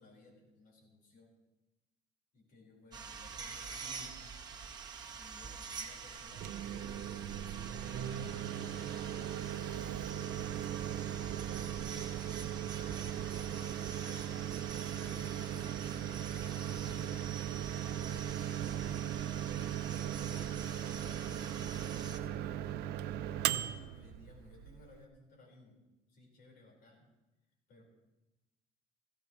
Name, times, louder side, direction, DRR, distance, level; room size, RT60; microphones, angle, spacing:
voice 1, 0.0-1.4 2.3-4.3 5.1-9.6 10.1-14.3 14.7-17.2 17.9-20.6 21.0-23.0 23.4-25.8 26.1-27.1 27.7-27.8, left 2 dB, 65° left, -1 dB, 4.6 m, -59 dB
sound 1, 2.9-22.2, right 5 dB, 25° right, 1.1 m, -46 dB
Microwave oven, 6.2-25.0, right 11 dB, 85° right, 0.6 m, -38 dB
17.5 x 15.5 x 3.1 m, 1.0 s
cardioid pair, 160°, 16 cm